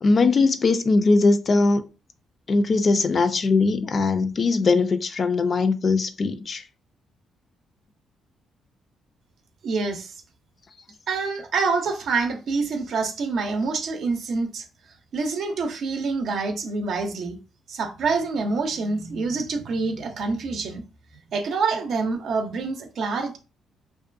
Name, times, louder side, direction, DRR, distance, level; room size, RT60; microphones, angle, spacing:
voice 1, 0.0-1.8 2.5-6.6, left 3 dB, 45° left, 0.3 m, -20 dB
voice 2, 9.6-10.2 11.1-14.6 15.1-17.4 17.7-20.8 21.3-23.4, right 4 dB, 65° right, 0.5 m, -26 dB
2.5 x 2.2 x 2.5 m
cardioid pair, 90°, 0 cm